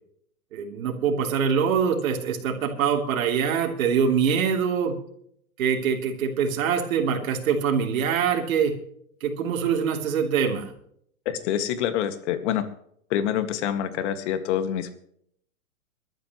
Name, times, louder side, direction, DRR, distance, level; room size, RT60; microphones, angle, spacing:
voice 1, 0.5-4.9 5.6-8.7 9.2-10.7, right 7 dB, 65° right, 2 dB, 3.4 m, -24 dB
voice 2, 11.3-12.6 13.1-14.9, left 10 dB, 50° left, 9 dB, 2.0 m, -26 dB
22.5 x 13.0 x 3.1 m, 0.67 s
hypercardioid pair, 125°, 43 cm